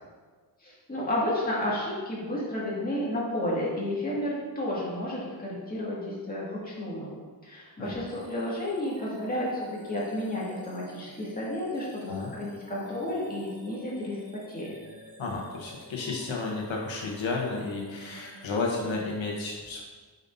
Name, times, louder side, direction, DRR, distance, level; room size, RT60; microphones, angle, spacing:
voice 1, 0.6-7.1 7.4-14.2 14.5-14.7, left 1 dB, 20° left, -6 dB, 2.1 m, -32 dB
sound 1, 8.1-18.9, right 1 dB, 30° right, 1.1 m, -50 dB
voice 2, 15.2-19.8, left 3 dB, 80° left, -1 dB, 1.1 m, -32 dB
9.1 x 5.2 x 2.7 m, 1.4 s
wide cardioid pair, 130°, 46 cm